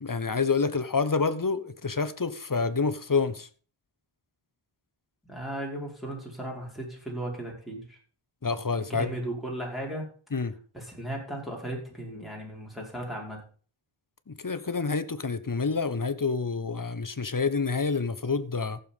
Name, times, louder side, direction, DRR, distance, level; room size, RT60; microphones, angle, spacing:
voice 1, 0.0-3.5 8.4-9.1 10.3-10.5 14.3-18.8, left 4 dB, 40° left, 1.2 m, -28 dB
voice 2, 5.3-8.0 8.7-10.1 10.7-13.5, right 1 dB, ahead, 5.4 m, -36 dB
15.0 x 7.1 x 5.5 m
wide cardioid pair, 55°, 50 cm